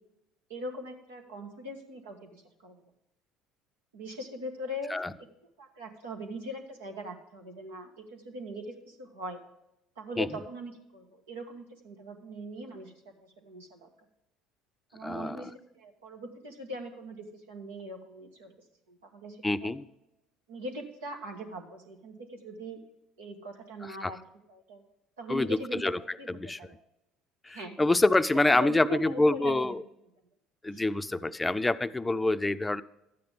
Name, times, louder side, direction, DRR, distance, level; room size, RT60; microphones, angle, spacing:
voice 1, 0.5-2.8 3.9-5.0 5.6-9.4 9.9-12.9 13.2-13.9 14.9-18.6 18.9-19.7 20.5-22.8 23.2-24.2 24.5-24.8 25.2-25.9 26.2-26.7 27.5-27.8 28.4-29.7 30.7-30.8, right 1 dB, 90° right, 2 dB, 1.7 m, -41 dB
voice 2, 15.0-15.5 19.4-19.8 24.0-24.1 25.3-26.0 26.3-26.6 27.4-29.8 30.6-32.8, left 2 dB, 15° left, 13 dB, 0.5 m, -26 dB
12.5 x 9.5 x 3.5 m, 0.87 s
hypercardioid pair, 70°, 0 cm